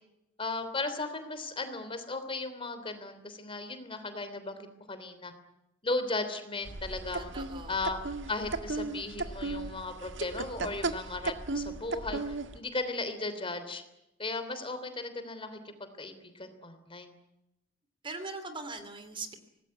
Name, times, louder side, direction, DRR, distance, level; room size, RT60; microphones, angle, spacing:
voice 1, 0.4-5.3 5.8-7.3 7.7-8.0 8.3-12.2 12.5-13.8 14.2-15.6 16.0-17.2, left 3 dB, 30° left, 9 dB, 3.3 m, -36 dB
sound 1, 6.6-12.6, right 3 dB, 70° right, 1.7 m, -36 dB
voice 2, 7.2-7.8 18.0-19.4, right 3 dB, 25° right, 10 dB, 2.7 m, -40 dB
25.5 x 19.0 x 9.6 m, 0.89 s
head